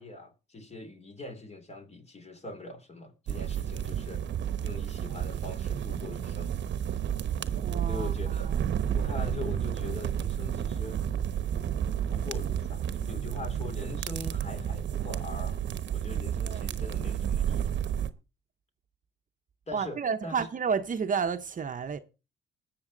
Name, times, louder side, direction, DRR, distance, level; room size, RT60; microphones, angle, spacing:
voice 1, 0.0-4.3 4.6-6.6 7.9-8.5 8.9-11.0 12.1-15.6 15.9-17.8 19.7-20.5, left 3 dB, 35° left, 2.8 m, -42 dB
sound 1, 3.3-18.1, right 9 dB, 65° right, 1.0 m, -31 dB
voice 2, 7.6-8.1 8.6-8.9 16.4-16.8 19.7-22.0, right 6 dB, 40° right, 0.9 m, -31 dB
20.5 x 7.0 x 3.9 m
cardioid pair, 90°, 20 cm